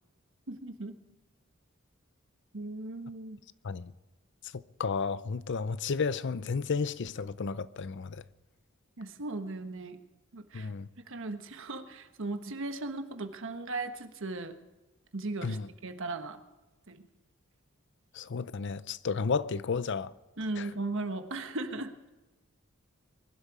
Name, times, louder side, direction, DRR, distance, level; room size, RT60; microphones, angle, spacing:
voice 1, 0.5-1.0 2.5-3.4 9.0-10.0 10.3-10.7 11.1-14.6 15.1-16.4 16.9-17.1 20.4-22.1, right 2 dB, 65° right, 1.3 m, -37 dB
voice 2, 4.5-8.2 10.5-10.9 15.4-15.7 18.1-20.1 20.6-20.7, left 5 dB, 60° left, 0.6 m, -32 dB
22.0 x 12.0 x 4.8 m
head